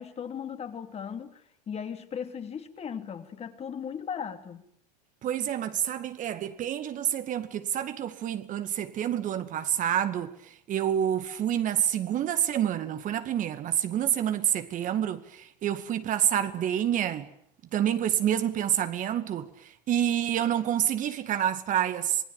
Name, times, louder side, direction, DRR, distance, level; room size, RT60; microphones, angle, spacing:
voice 1, 0.0-1.4 1.7-4.6, left 7 dB, 30° left, 3.1 m, -37 dB
voice 2, 5.2-17.3 17.7-22.2, right 10 dB, 40° right, 2.2 m, -28 dB
27.0 x 21.5 x 9.0 m
hypercardioid pair, 85°, 21 cm